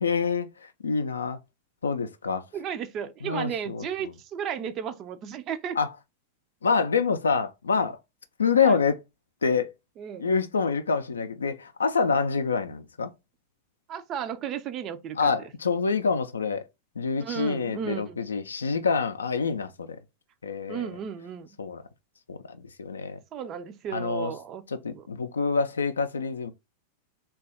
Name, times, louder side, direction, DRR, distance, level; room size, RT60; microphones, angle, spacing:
voice 1, 0.0-1.4 1.8-2.4 3.2-3.9 5.8-5.9 6.6-8.0 8.4-9.0 9.4-9.7 10.2-13.1 15.2-16.6 17.0-20.0 20.4-20.9 21.6-21.8 22.3-23.2 23.9-24.3 24.7-26.5, left 5 dB, 70° left, 0.4 m, -26 dB
voice 2, 2.5-5.8 8.6-8.8 10.0-10.3 13.9-15.3 17.2-18.2 20.7-21.5 23.3-25.1, right 8 dB, 35° right, 0.4 m, -34 dB
3.3 x 2.3 x 3.8 m
figure-of-eight pair, 90°, 0 cm